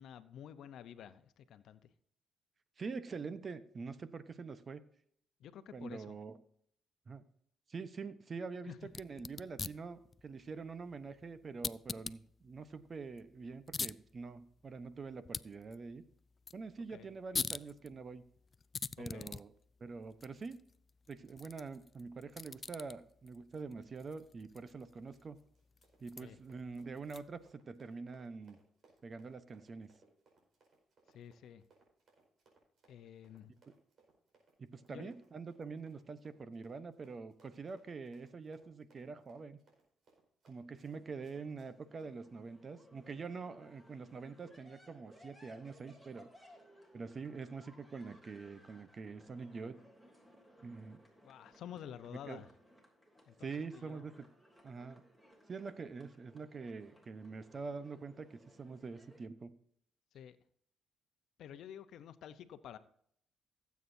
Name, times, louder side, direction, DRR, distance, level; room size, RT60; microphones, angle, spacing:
voice 1, 0.0-1.9 5.4-6.2 8.7-8.8 16.9-17.1 19.0-19.3 26.2-26.4 31.1-31.6 32.9-33.5 34.9-35.1 51.2-52.5 53.3-54.0 60.1-60.4 61.4-62.8, left 9 dB, 75° left, 12 dB, 0.7 m, -50 dB
voice 2, 2.8-4.8 5.7-6.4 7.1-7.2 7.7-16.0 16.5-18.2 19.0-19.5 19.8-20.6 21.1-25.4 26.0-28.6 29.0-29.9 34.6-39.6 40.4-46.3 46.9-49.8 50.6-51.0 52.3-52.4 53.4-54.3 54.6-55.0 55.5-59.5, right 4 dB, 40° right, 13 dB, 0.9 m, -45 dB
sound 1, 8.8-27.5, left 4 dB, 35° left, 0.3 m, -46 dB
Run, 24.9-42.1, right 3 dB, 60° right, 4.8 m, -70 dB
sound 2, 40.8-59.2, equal, 10° right, 3.0 m, -63 dB
17.0 x 8.3 x 2.7 m, 0.66 s
cardioid pair, 90°, 0 cm